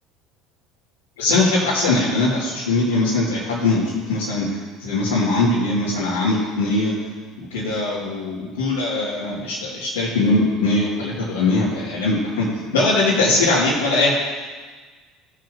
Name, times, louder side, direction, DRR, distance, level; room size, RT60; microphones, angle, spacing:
voice 1, 1.2-6.9 7.5-14.1, left 2 dB, 85° left, -9 dB, 2.5 m, -21 dB
16.5 x 7.7 x 2.9 m, 1.4 s
hypercardioid pair, 70°, 0 cm